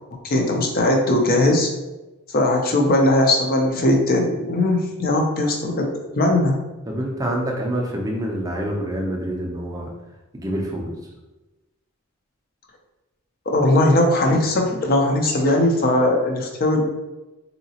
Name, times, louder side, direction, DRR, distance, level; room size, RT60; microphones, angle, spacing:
voice 1, 0.2-1.7 2.3-5.9 6.2-6.6 13.5-16.8, left 1 dB, 45° left, 2 dB, 0.5 m, -19 dB
voice 2, 6.9-9.9 10.3-11.0, right 1 dB, 15° right, -1 dB, 0.5 m, -26 dB
3.8 x 2.8 x 2.8 m, 1.1 s
head